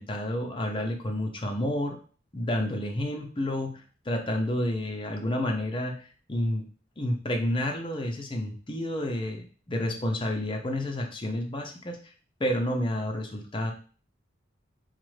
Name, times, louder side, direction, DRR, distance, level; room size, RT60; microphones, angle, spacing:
voice 1, 0.0-2.0 2.3-6.7 7.0-12.0 12.4-13.7, left 1 dB, 25° left, 2 dB, 0.6 m, -30 dB
4.1 x 2.4 x 3.2 m, 0.40 s
head